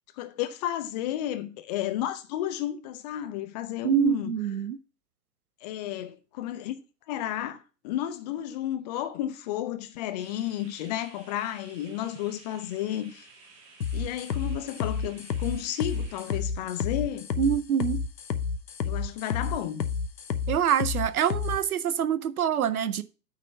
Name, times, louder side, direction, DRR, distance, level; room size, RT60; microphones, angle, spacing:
voice 1, 0.2-4.3 5.6-6.7 7.1-13.3 13.9-17.3 18.8-19.9, left 12 dB, 25° left, 0.7 m, -32 dB
voice 2, 3.8-4.8 17.4-18.0 20.5-23.0, right 9 dB, 60° right, 0.7 m, -25 dB
sound 1, 10.2-16.4, right 4 dB, 35° right, 2.5 m, -54 dB
sound 2, 13.8-21.6, left 6 dB, 80° left, 0.8 m, -30 dB
9.0 x 3.9 x 5.7 m
figure-of-eight pair, 105°, 49 cm